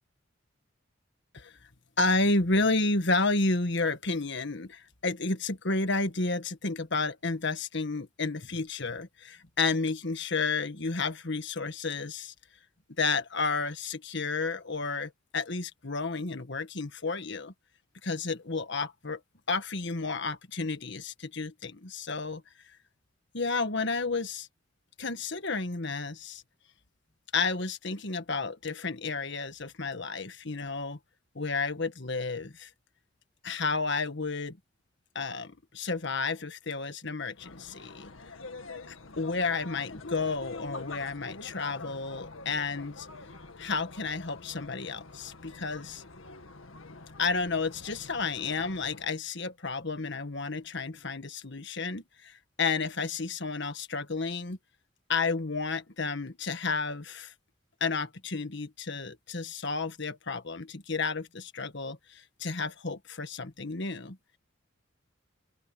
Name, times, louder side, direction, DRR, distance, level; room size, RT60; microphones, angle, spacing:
voice 1, 2.0-12.3 13.0-17.5 18.0-19.2 19.5-22.4 23.3-24.5 25.0-26.4 27.3-31.0 31.3-32.7 33.4-34.6 35.1-38.1 38.9-43.1 43.6-46.0 47.2-54.6 55.1-57.3 57.8-64.2, left 3 dB, 60° left, 1.6 m, -31 dB
sound 1, 37.3-49.1, left 3 dB, 80° left, 1.9 m, -46 dB
open air
head